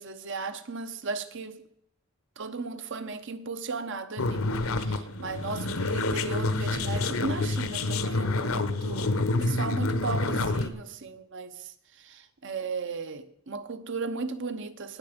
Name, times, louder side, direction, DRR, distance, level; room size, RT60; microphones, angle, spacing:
voice 1, 0.0-1.6 2.4-15.0, right 4 dB, 55° right, 0.9 m, -36 dB
sound 1, 4.2-10.7, left 2 dB, 70° left, 1.0 m, -28 dB
19.0 x 6.9 x 5.2 m
head